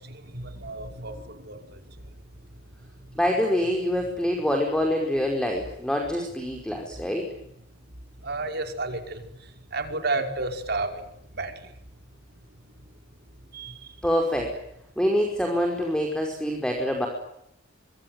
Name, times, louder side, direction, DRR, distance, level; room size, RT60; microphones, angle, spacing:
voice 1, 0.3-1.1 1.5-1.6 8.2-9.2 9.7-11.0 11.4-11.5 13.5-13.7, right 3 dB, 55° right, 5 dB, 5.4 m, -30 dB
voice 2, 3.2-7.2 14.0-14.5 15.0-17.1, equal, 5° left, 2 dB, 5.4 m, -25 dB
25.5 x 25.0 x 9.2 m, 0.76 s
head